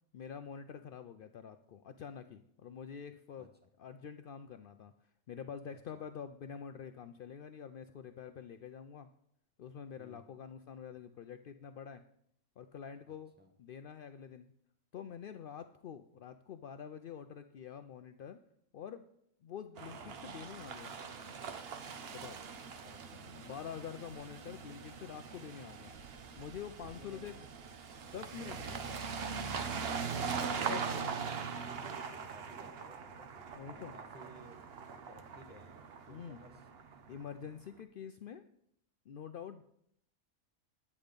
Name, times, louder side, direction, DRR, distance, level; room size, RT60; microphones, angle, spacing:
voice 1, 0.1-3.5 3.8-9.1 9.6-12.0 12.6-13.3 13.6-14.5 14.9-18.4 18.7-19.0 19.4-21.0 22.1-22.4 23.1-25.9 26.4-27.4 28.0-28.8 30.7-31.4 33.5-33.9 36.1-36.4 37.1-38.4 39.1-39.6, left 7 dB, 80° left, 9 dB, 0.4 m, -47 dB
voice 2, 5.7-6.0 10.0-10.3 13.0-13.5 22.8-23.1 23.7-23.8 27.0-27.5 29.8-30.4 32.3-33.3 33.7-34.6 35.1-36.6, equal, 10° right, 2 dB, 1.1 m, -57 dB
sound 1, 19.8-37.4, right 6 dB, 50° right, 0.9 m, -42 dB
9.8 x 8.4 x 5.2 m, 0.72 s
omnidirectional pair, 1.5 m